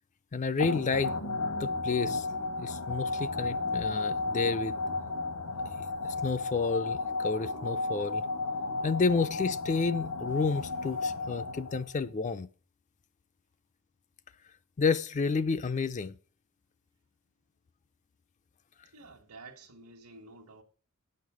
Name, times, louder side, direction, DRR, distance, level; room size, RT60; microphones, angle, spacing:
voice 1, 0.3-1.2 1.6-2.3 2.6-4.7 6.0-8.2 8.8-12.5 14.8-16.1, left 4 dB, 35° left, 0.4 m, -30 dB
sound 1, 0.6-12.0, left 3 dB, 85° left, 1.4 m, -33 dB
voice 2, 18.9-20.6, right 3 dB, 70° right, 1.3 m, -50 dB
9.5 x 6.6 x 4.8 m
head